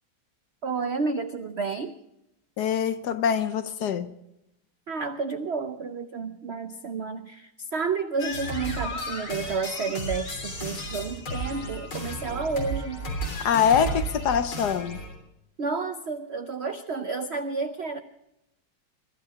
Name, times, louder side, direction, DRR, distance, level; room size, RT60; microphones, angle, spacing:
voice 1, 0.6-2.0 4.9-13.0 15.6-18.0, right 4 dB, 80° right, 0.5 m, -31 dB
voice 2, 2.6-4.1 13.4-15.0, left 8 dB, 65° left, 1.2 m, -24 dB
sound 1, 8.2-15.1, right 1 dB, 85° left, 4.2 m, -33 dB
22.0 x 12.5 x 5.0 m
omnidirectional pair, 2.2 m